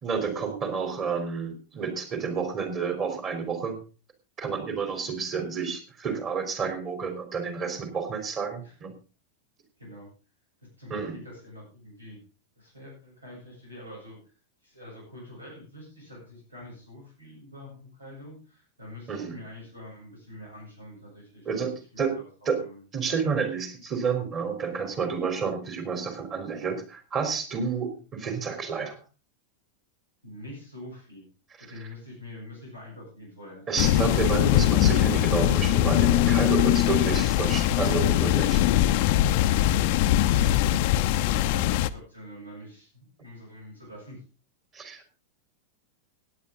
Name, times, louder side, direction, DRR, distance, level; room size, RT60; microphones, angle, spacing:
voice 1, 0.0-3.8 4.4-8.9 10.9-11.2 19.1-19.4 21.5-21.7 22.0-22.1 22.5-22.6 22.9-29.0 33.7-38.6 44.7-45.1, right 5 dB, 30° right, 7 dB, 3.7 m, -30 dB
voice 2, 10.6-12.2 12.6-14.3 14.6-22.8 27.9-28.0 30.2-31.3 31.6-33.7 40.3-44.2, left 1 dB, 85° right, -4 dB, 7.7 m, -45 dB
sound 1, 33.8-41.9, left 13 dB, 50° left, 0.7 m, -22 dB
17.0 x 9.8 x 3.8 m, 0.33 s
figure-of-eight pair, 90°, 0 cm